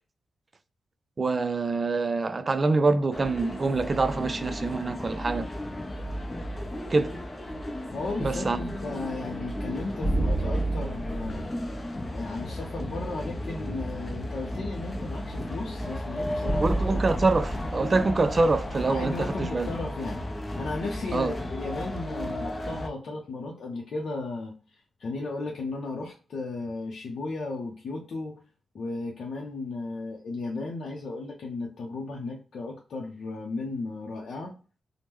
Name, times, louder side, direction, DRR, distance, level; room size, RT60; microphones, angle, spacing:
voice 1, 1.2-5.5 6.9-7.2 8.2-9.0 16.6-19.7 21.1-21.4, right 3 dB, 40° right, 0.3 m, -25 dB
sound 1, 3.1-22.9, left 1 dB, 25° left, 0.5 m, -34 dB
voice 2, 7.9-11.5 12.1-16.8 18.9-20.2 20.6-28.4 28.7-34.5, left 3 dB, 70° left, 0.6 m, -35 dB
sound 2, 10.0-12.2 16.4-19.7, right 1 dB, 55° left, 1.1 m, -30 dB
3.4 x 2.0 x 2.9 m
cardioid pair, 85°, 0 cm